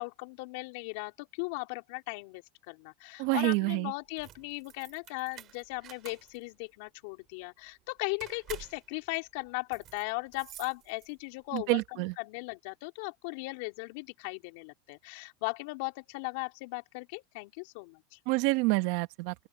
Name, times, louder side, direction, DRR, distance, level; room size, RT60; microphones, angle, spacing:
voice 1, 0.0-18.0, left 27 dB, 65° left, 3.7 m, -38 dB
voice 2, 3.2-3.9 11.5-12.1 18.3-19.3, right 24 dB, 60° right, 1.3 m, -27 dB
sound 1, 4.0-11.4, right 13 dB, 40° right, 6.9 m, -50 dB
open air
supercardioid pair, 130°, 0 cm